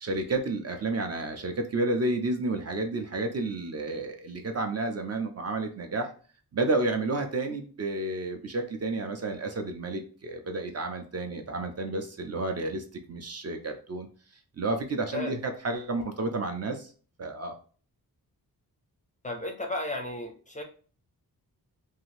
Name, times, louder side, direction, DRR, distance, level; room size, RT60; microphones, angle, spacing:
voice 1, 0.0-6.1 6.5-14.1 14.6-16.9 17.2-17.5, right 2 dB, 40° right, 5 dB, 0.4 m, -31 dB
voice 2, 19.2-20.6, left 2 dB, 20° left, 2 dB, 0.4 m, -34 dB
2.7 x 2.4 x 3.0 m, 0.40 s
wide cardioid pair, 175°, 39 cm